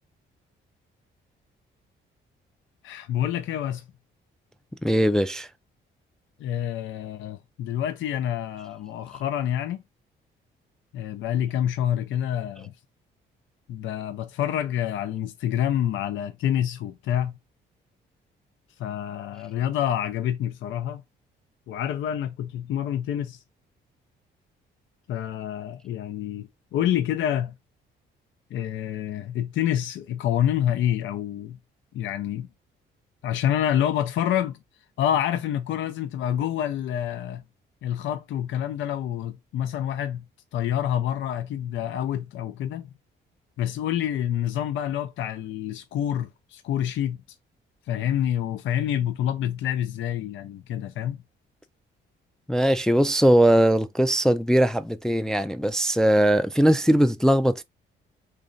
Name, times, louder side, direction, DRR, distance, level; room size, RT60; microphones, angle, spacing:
voice 1, 2.8-3.8 6.4-9.8 10.9-12.7 13.7-17.4 18.8-21.0 21.7-23.4 25.1-27.5 28.5-31.6 31.9-32.5 33.2-34.6 35.0-37.4 37.8-40.2 40.5-42.9 43.6-47.2 47.9-51.2, left 10 dB, 75° left, 0.6 m, -27 dB
voice 2, 4.8-5.5 52.5-57.6, right 1 dB, 5° left, 0.3 m, -20 dB
3.3 x 2.5 x 3.8 m
cardioid pair, 90°, 20 cm